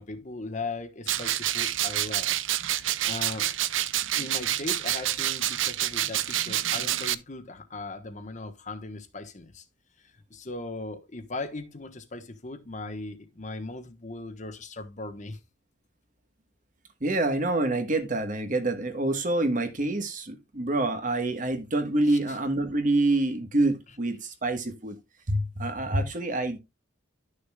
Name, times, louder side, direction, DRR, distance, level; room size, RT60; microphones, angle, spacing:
voice 1, 0.0-2.4 3.1-3.5 4.2-9.6 10.3-15.4 22.1-22.2, left 2 dB, 40° left, 1.2 m, -38 dB
sound 1, 1.1-7.1, right 13 dB, 75° right, 0.5 m, -28 dB
voice 2, 17.0-25.0 25.3-26.6, right 2 dB, 40° right, 1.3 m, -26 dB
11.5 x 6.6 x 2.3 m
head